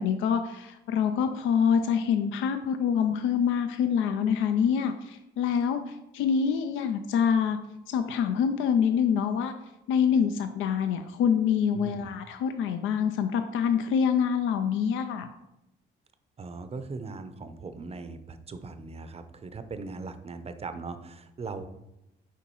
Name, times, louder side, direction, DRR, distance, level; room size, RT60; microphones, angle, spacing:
voice 1, 0.0-7.6 7.9-9.5 9.9-15.3, left 7 dB, 85° left, 8 dB, 0.4 m, -26 dB
voice 2, 11.7-12.1 16.4-21.7, right 4 dB, 30° right, 10 dB, 0.5 m, -39 dB
6.9 x 4.6 x 3.0 m, 0.88 s
cardioid pair, 90°, 20 cm